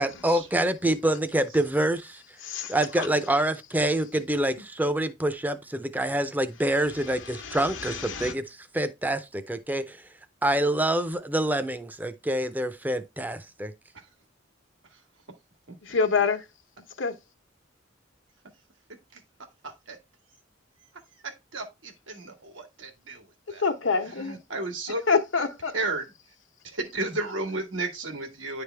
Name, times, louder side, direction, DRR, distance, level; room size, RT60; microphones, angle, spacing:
voice 1, 0.0-2.2 2.7-10.0 10.4-13.7, right 1 dB, 10° right, 0.5 m, -26 dB
voice 2, 2.4-3.1 7.3-8.3 15.8-16.4 17.0-17.1 23.6-24.4 25.1-25.7, left 5 dB, 85° left, 1.0 m, -27 dB
voice 3, 15.7-16.0 19.1-19.2 19.6-20.0 21.2-23.6 24.0-25.0 25.7-26.1 26.6-28.6, right 2 dB, 85° right, 1.6 m, -34 dB
10.0 x 3.4 x 3.3 m
head